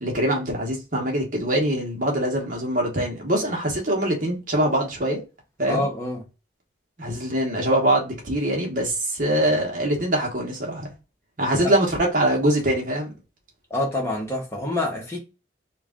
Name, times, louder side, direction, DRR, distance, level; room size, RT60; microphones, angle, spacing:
voice 1, 0.0-5.2 5.6-5.9 7.0-10.9 11.4-13.1, right 1 dB, 45° right, 1.1 m, -23 dB
voice 2, 5.7-6.2 11.6-11.7 13.7-15.2, left 1 dB, 15° left, 0.9 m, -26 dB
3.2 x 2.4 x 3.5 m
head